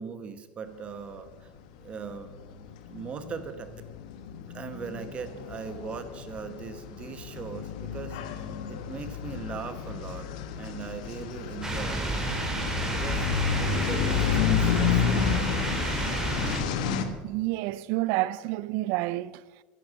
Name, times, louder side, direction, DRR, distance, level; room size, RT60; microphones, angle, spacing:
voice 1, 0.0-1.5 1.8-2.3 2.9-3.9 4.5-10.3 10.6-12.1 12.8-15.3, right 5 dB, 30° right, 1.2 m, -39 dB
sound 1, 1.6-1.7 1.9-17.1, left 7 dB, 85° left, 1.2 m, -31 dB
sound 2, 11.6-16.6, right 2 dB, 15° right, 2.4 m, -30 dB
voice 2, 17.2-19.6, right 17 dB, 65° right, 0.4 m, -29 dB
10.5 x 10.5 x 6.4 m
supercardioid pair, 125°, 4 cm